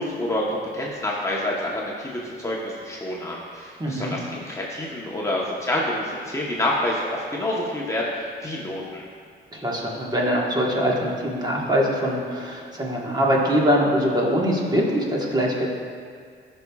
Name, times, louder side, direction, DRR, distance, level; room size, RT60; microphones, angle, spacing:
voice 1, 0.0-9.0, left 1 dB, 15° left, -5 dB, 1.0 m, -28 dB
voice 2, 3.8-4.2 9.5-15.7, equal, 20° right, -3 dB, 1.4 m, -23 dB
13.0 x 5.4 x 2.3 m, 2.1 s
cardioid pair, 90°, 20 cm